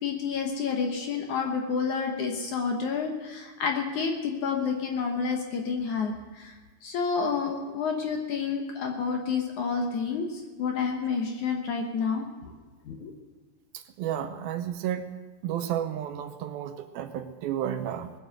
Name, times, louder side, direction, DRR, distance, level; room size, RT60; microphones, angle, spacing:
voice 1, 0.0-6.5 6.8-12.3 12.9-13.1, left 5 dB, 65° left, 2 dB, 2.2 m, -29 dB
voice 2, 13.7-15.1 15.4-18.1, right 10 dB, 75° right, 8 dB, 2.5 m, -32 dB
20.0 x 7.8 x 7.8 m, 1.2 s
omnidirectional pair, 4.5 m